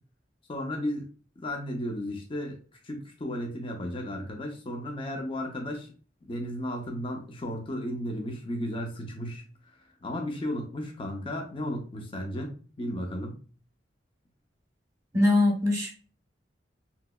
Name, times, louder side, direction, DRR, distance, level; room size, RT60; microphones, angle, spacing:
voice 1, 0.5-1.1 1.4-2.6 2.8-5.9 6.2-9.4 9.8-13.4, left 1 dB, 30° left, 2 dB, 0.5 m, -34 dB
voice 2, 15.1-15.9, left 2 dB, 20° right, 0 dB, 0.9 m, -22 dB
3.1 x 2.8 x 2.2 m, 0.39 s
head